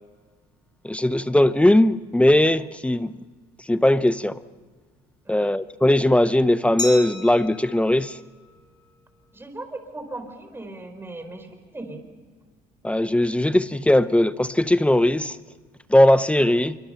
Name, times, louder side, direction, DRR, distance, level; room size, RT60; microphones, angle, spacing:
voice 1, 0.8-3.1 3.7-4.4 5.3-8.2 12.8-15.4 15.9-16.8, left 1 dB, 5° left, 0.7 m, -19 dB
Glass, 6.8-9.5, left 2 dB, 25° left, 3.5 m, -36 dB
voice 2, 9.3-12.0, right 2 dB, 15° right, 4.2 m, -38 dB
26.5 x 24.0 x 5.7 m
cardioid pair, 110°, 17 cm